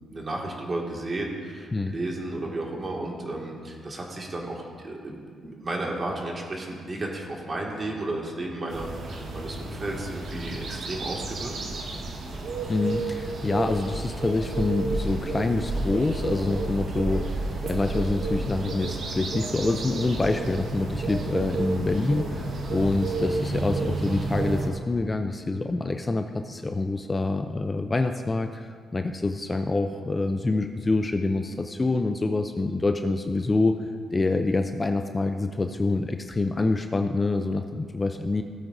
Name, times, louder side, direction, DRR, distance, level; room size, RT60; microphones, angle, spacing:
voice 1, 0.0-11.6, right 2 dB, 35° right, -1 dB, 2.0 m, -33 dB
sound 1, 8.7-24.7, right 2 dB, 60° right, 1.4 m, -31 dB
voice 2, 12.7-33.8 34.1-38.4, left 2 dB, 20° left, 6 dB, 0.5 m, -26 dB
17.0 x 8.8 x 2.7 m, 2.1 s
cardioid pair, 95°, 0 cm